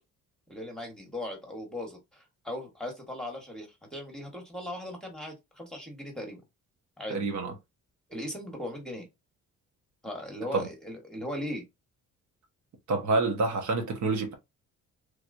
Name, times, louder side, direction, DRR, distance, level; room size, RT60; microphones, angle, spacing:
voice 1, 0.5-6.4 7.0-7.2 8.1-9.1 10.0-11.6, left 1 dB, ahead, 1.3 m, -38 dB
voice 2, 7.1-7.5 10.5-10.7 12.9-14.3, right 3 dB, 70° right, 1.2 m, -27 dB
3.3 x 2.9 x 2.6 m
cardioid pair, 90°, 30 cm